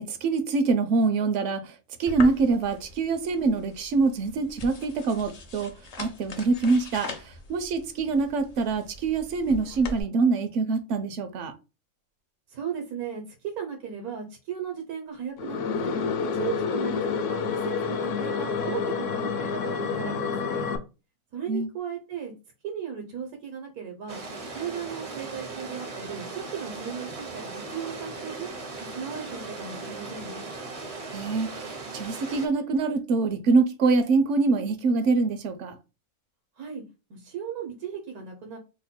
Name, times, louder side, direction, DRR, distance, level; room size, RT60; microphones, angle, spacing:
voice 1, 0.0-1.7 2.0-5.7 6.0-7.1 7.5-11.5 21.5-21.7 31.1-35.8, right 4 dB, 70° right, 0.8 m, -24 dB
sound 1, 2.1-10.0, left 3 dB, 85° left, 0.3 m, -41 dB
voice 2, 12.5-15.9 16.3-20.7 21.3-22.3 22.6-24.2 24.5-28.5 28.8-30.4 36.6-36.8 37.1-38.6, right 7 dB, 85° right, 1.2 m, -36 dB
sound 2, 15.4-20.8, left 5 dB, 70° left, 0.8 m, -28 dB
sound 3, 24.1-32.5, right 3 dB, 50° right, 0.4 m, -38 dB
3.0 x 2.1 x 4.1 m
omnidirectional pair, 1.5 m